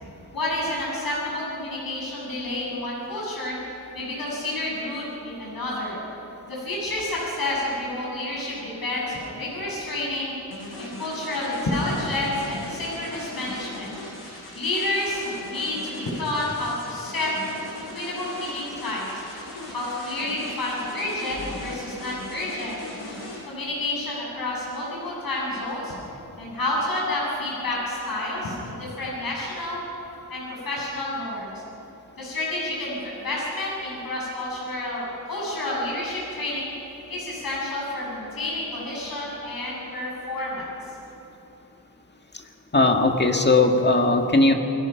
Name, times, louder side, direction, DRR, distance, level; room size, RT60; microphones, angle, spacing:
voice 1, 0.3-3.6 3.9-6.0 6.5-10.3 10.8-13.9 14.5-17.3 17.9-19.1 19.7-22.8 23.5-25.9 26.4-29.9 30.3-31.5 32.2-36.7 37.1-40.7, left 1 dB, 65° left, -4 dB, 7.4 m, -29 dB
sound 1, 10.5-23.4, left 1 dB, 85° left, 7.7 m, -39 dB
voice 2, 42.7-44.5, left 2 dB, 30° left, 4 dB, 1.8 m, -18 dB
28.0 x 21.0 x 6.0 m, 2.9 s
wide cardioid pair, 140°, 37 cm